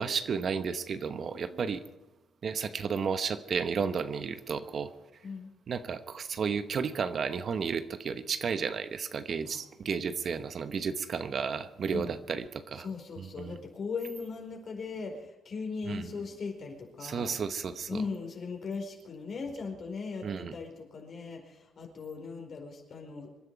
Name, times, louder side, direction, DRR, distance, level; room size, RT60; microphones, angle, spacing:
voice 1, 0.0-1.8 2.4-4.9 5.7-12.9 13.2-13.6 15.9-16.1 17.0-18.0 20.2-20.5, right 6 dB, 50° right, 11 dB, 1.0 m, -33 dB
voice 2, 12.8-17.3 17.9-23.3, left 4 dB, 50° left, 2 dB, 4.6 m, -39 dB
25.0 x 11.0 x 4.8 m, 1.0 s
cardioid pair, 90°, 0 cm